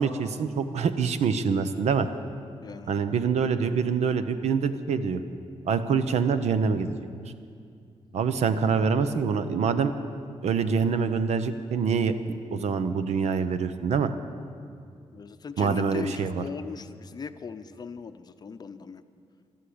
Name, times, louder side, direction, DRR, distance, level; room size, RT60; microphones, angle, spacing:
voice 1, 0.0-2.1 2.9-5.2 5.7-6.9 8.1-9.9 10.4-12.1 12.5-14.1 15.6-16.4, right 6 dB, 80° right, 11 dB, 0.8 m, -25 dB
voice 2, 2.6-2.9 15.1-19.0, left 5 dB, 40° left, 10 dB, 0.6 m, -39 dB
13.0 x 13.0 x 8.6 m, 2.3 s
wide cardioid pair, 135°, 11 cm